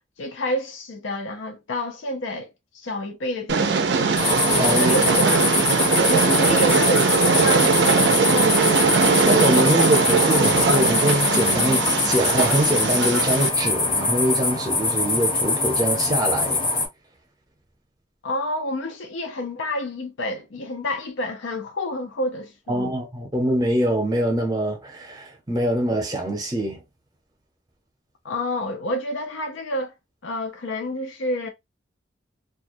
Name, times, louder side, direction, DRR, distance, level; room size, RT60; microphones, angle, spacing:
voice 1, 0.2-4.0 4.8-5.5 6.1-8.8 18.2-23.0 28.2-29.9 30.2-31.5, left 1 dB, 85° left, 0.6 m, -29 dB
Train, 3.5-13.5, right 4 dB, 65° right, 0.4 m, -20 dB
sound 1, 4.2-16.9, left 3 dB, 25° left, 0.7 m, -23 dB
voice 2, 4.5-5.0 6.3-6.5 9.2-16.6 22.7-26.8, right 1 dB, 20° right, 0.7 m, -24 dB
2.3 x 2.1 x 2.6 m
head